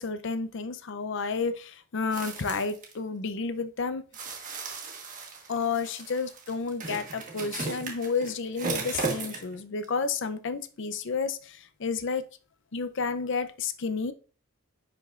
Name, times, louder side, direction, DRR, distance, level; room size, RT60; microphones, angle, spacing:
voice 1, 0.0-4.0 5.5-12.3 12.7-14.1, left 4 dB, 60° left, 11 dB, 0.6 m, -31 dB
sound 1, 2.1-2.9 4.1-9.6 9.8-9.9, right 4 dB, 40° right, 1.4 m, -36 dB
9.9 x 5.2 x 2.5 m, 0.38 s
head